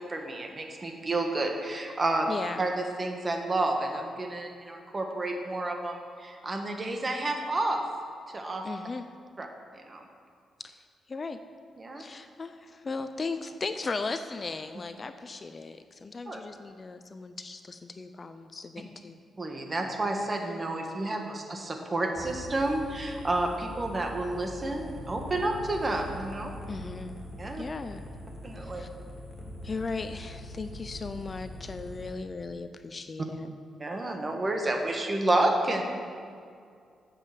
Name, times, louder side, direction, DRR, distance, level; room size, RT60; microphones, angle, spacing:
voice 1, 0.0-2.3 2.6-7.8 8.3-8.6 9.4-9.5 9.7-10.0 11.8-12.0 16.3-16.4 19.4-26.6 27.4-27.6 28.4-28.8 33.8-35.8, right 2 dB, 30° right, 3 dB, 1.4 m, -30 dB
voice 2, 2.3-2.7 8.6-9.1 10.6-10.8 11.1-11.4 12.0-19.2 26.7-27.2 27.6-28.0 28.6-28.9 29.6-33.5, left 4 dB, 35° left, 9 dB, 0.5 m, -37 dB
sound 1, 22.2-32.1, left 1 dB, 5° left, 2.1 m, -43 dB
9.4 x 7.5 x 7.1 m, 2.3 s
cardioid pair, 105°, 0 cm